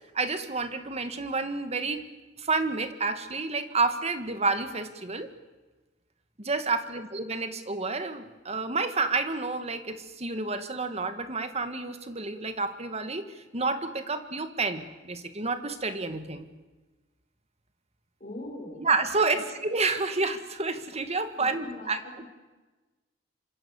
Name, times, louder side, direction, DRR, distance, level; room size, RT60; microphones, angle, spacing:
voice 1, 0.1-2.0 2.4-5.3 6.4-16.5 18.8-22.0, right 3 dB, 35° right, 9 dB, 2.0 m, -29 dB
voice 2, 18.2-18.8 19.3-19.5 21.4-22.2, left 1 dB, 40° left, -4 dB, 6.3 m, -41 dB
26.5 x 26.0 x 7.3 m, 1.2 s
head